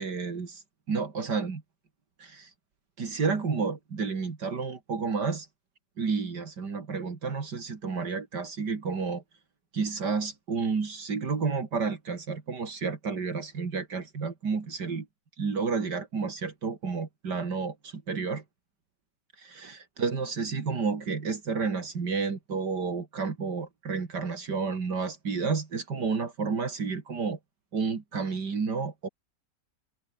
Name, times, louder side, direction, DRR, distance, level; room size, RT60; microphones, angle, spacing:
voice 1, 0.0-1.6 2.2-2.5 3.0-5.5 6.0-9.2 9.7-15.1 15.4-18.4 19.4-27.4 27.7-29.1, right 5 dB, 75° right, 3.2 m, -31 dB
omnidirectional pair, 1.8 m